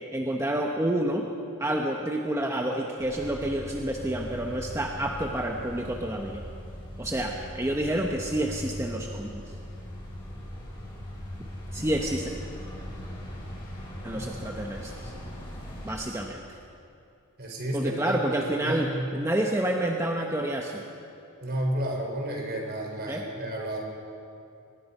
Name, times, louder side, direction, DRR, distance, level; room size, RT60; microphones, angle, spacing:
voice 1, 0.1-1.3 1.6-6.4 7.0-9.4 11.7-12.3 14.0-15.1 15.8-16.4 17.7-20.8 23.1-23.2, right 1 dB, 15° right, 1 dB, 1.1 m, -29 dB
sound 1, 3.0-15.9, equal, 25° left, 6.6 m, -40 dB
voice 2, 17.4-19.1 21.4-23.8, right 1 dB, 50° right, 1 dB, 4.1 m, -32 dB
24.0 x 19.5 x 5.5 m, 2.6 s
head